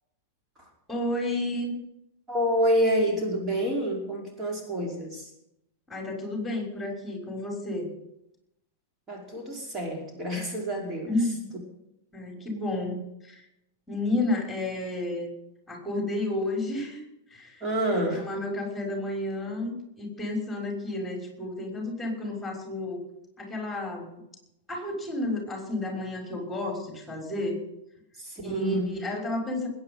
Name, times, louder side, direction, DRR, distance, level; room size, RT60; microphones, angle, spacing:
voice 1, 0.9-1.8 5.9-7.9 11.1-11.5 12.1-13.5 13.9-15.3 15.7-17.0 17.3-17.6 17.9-23.1 23.4-24.2 24.7-27.6 28.4-29.7, left 2 dB, 5° left, 1 dB, 6.1 m, -31 dB
voice 2, 2.3-5.3 9.1-11.1 17.6-18.2 28.2-28.9, equal, 25° right, 0 dB, 5.3 m, -28 dB
21.0 x 9.5 x 5.7 m, 0.81 s
figure-of-eight pair, 95°, 0 cm